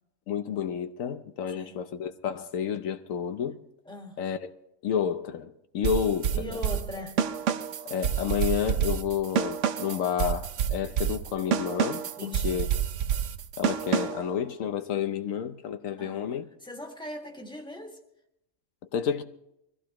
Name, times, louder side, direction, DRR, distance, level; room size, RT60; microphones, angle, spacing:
voice 1, 0.3-3.6 4.2-4.5 4.8-6.6 7.9-12.0 12.4-12.7 13.6-16.4 18.9-19.2, left 8 dB, 75° left, 1.1 m, -30 dB
voice 2, 1.5-1.8 3.9-4.2 6.3-7.2 12.2-12.6 16.0-18.0, left 1 dB, 5° left, 1.7 m, -40 dB
sound 1, 5.8-14.3, right 8 dB, 65° right, 1.0 m, -28 dB
23.5 x 15.0 x 2.9 m
omnidirectional pair, 1.4 m